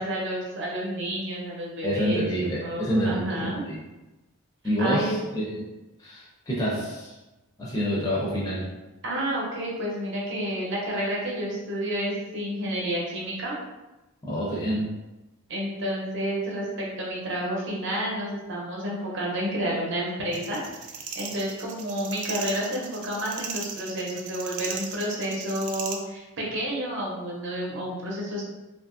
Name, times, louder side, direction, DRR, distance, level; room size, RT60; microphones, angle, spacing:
voice 1, 0.0-2.3 2.6-3.6 4.8-5.3 9.0-13.6 15.5-20.6 21.1-28.4, equal, 55° right, -4 dB, 0.7 m, -30 dB
voice 2, 1.8-3.8 4.6-5.7 6.0-7.2 7.6-8.7 14.2-14.9, equal, 15° left, -5 dB, 0.5 m, -27 dB
sound 1, 20.3-26.0, right 6 dB, 80° right, 0.4 m, -37 dB
2.7 x 2.4 x 2.5 m, 1.1 s
head